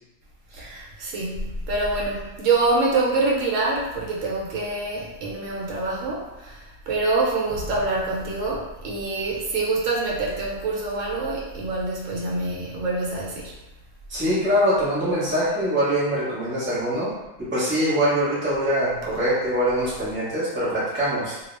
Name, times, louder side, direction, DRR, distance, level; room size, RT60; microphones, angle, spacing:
voice 1, 0.5-13.6 19.0-19.2, right 3 dB, 75° right, -3 dB, 0.9 m, -26 dB
voice 2, 14.1-17.1 17.4-21.4, equal, 10° right, -9 dB, 0.7 m, -23 dB
2.3 x 2.1 x 3.1 m, 1.0 s
omnidirectional pair, 1.4 m